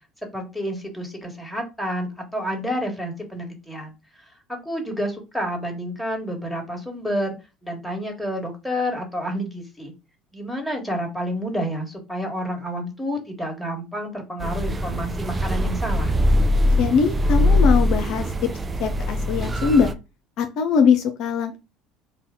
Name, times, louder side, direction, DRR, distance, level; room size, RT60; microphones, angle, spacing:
voice 1, 0.3-3.9 4.5-7.3 7.6-9.9 10.3-16.1, equal, 5° left, 2 dB, 1.7 m, -29 dB
sound 1, 14.4-19.9, left 1 dB, 25° right, 0.4 m, -21 dB
voice 2, 16.7-18.5 18.8-19.9 20.4-21.6, left 6 dB, 55° left, 6 dB, 0.5 m, -21 dB
4.1 x 2.2 x 3.7 m, 0.27 s
figure-of-eight pair, 65°, 0 cm